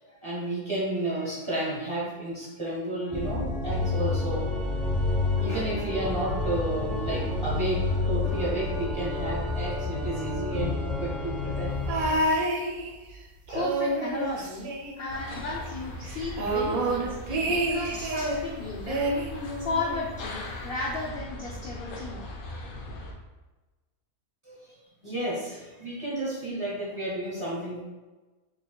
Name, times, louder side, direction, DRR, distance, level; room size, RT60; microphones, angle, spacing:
voice 1, 0.1-4.5 5.4-11.7 24.4-24.6 25.0-27.8, right 1 dB, 25° right, -7 dB, 0.8 m, -32 dB
Organ, 3.1-12.3, left 2 dB, ahead, 0.6 m, -29 dB
sound 1, 11.9-13.2 13.5-15.4 15.7-15.8 16.0-18.4 18.9-20.1 21.0-21.1, right 1 dB, 85° right, 1.1 m, -28 dB
voice 2, 13.5-19.0 19.6-22.3, left 3 dB, 65° left, -2 dB, 0.5 m, -34 dB
sound 2, 15.1-23.1, left 1 dB, 90° left, 1.1 m, -39 dB
3.9 x 3.3 x 2.3 m, 1.2 s
omnidirectional pair, 1.4 m